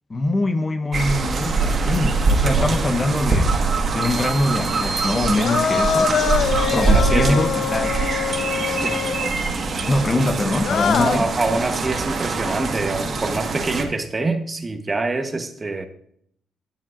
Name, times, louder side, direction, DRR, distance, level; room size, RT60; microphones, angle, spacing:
voice 1, 0.1-3.5 3.9-6.1 6.7-8.1 9.9-11.3, left 2 dB, 30° left, 8 dB, 1.0 m, -23 dB
sound 1, 0.9-13.8, right 3 dB, 45° right, 1.8 m, -23 dB
voice 2, 2.6-3.1 6.7-7.5 8.7-9.0 11.0-15.9, right 3 dB, 25° right, 7 dB, 1.1 m, -25 dB
sound 2, 4.0-6.0, right 3 dB, 10° right, 1.0 m, -33 dB
sound 3, 5.1-9.5 10.5-11.2, left 7 dB, 60° left, 0.5 m, -24 dB
18.0 x 7.4 x 2.6 m, 0.68 s
cardioid pair, 90°, 0 cm